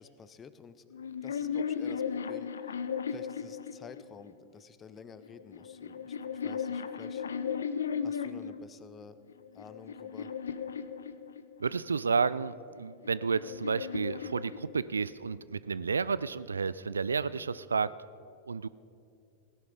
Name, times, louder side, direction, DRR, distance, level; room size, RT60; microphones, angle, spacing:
voice 1, 0.0-7.2 8.0-9.2 9.5-10.3, left 6 dB, 20° left, 13 dB, 0.7 m, -51 dB
sound 1, 0.9-4.3 5.2-8.6 9.3-11.7 12.7-15.2, left 7 dB, 70° left, 0.5 m, -36 dB
voice 2, 11.6-17.9 18.5-18.7, right 5 dB, 75° right, 18 dB, 0.3 m, -31 dB
17.0 x 11.0 x 4.9 m, 2.5 s
figure-of-eight pair, 90°, 0 cm